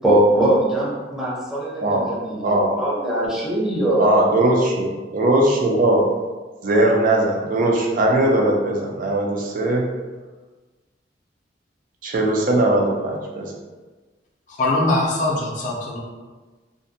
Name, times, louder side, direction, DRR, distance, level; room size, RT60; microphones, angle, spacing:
voice 1, 0.0-4.3, right 1 dB, 5° right, -7 dB, 0.6 m, -21 dB
voice 2, 2.4-2.8 4.0-6.1 6.6-10.0 12.0-13.5, right 1 dB, 50° right, 0 dB, 0.4 m, -19 dB
voice 3, 14.6-16.0, left 2 dB, 45° left, -3 dB, 0.4 m, -21 dB
2.5 x 2.1 x 2.6 m, 1.3 s
head